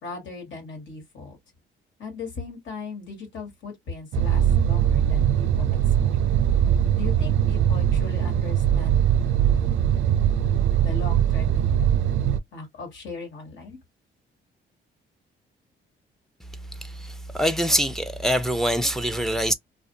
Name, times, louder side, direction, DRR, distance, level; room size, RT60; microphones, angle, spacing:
voice 1, 0.0-1.4 2.0-6.2 6.9-9.0 10.8-11.9 12.5-13.8, left 3 dB, 70° left, 1.6 m, -37 dB
sound 1, 4.1-12.4, right 10 dB, 80° right, 0.4 m, -21 dB
voice 2, 16.8-19.5, equal, ahead, 0.4 m, -24 dB
2.5 x 2.4 x 2.6 m
cardioid pair, 90°, 20 cm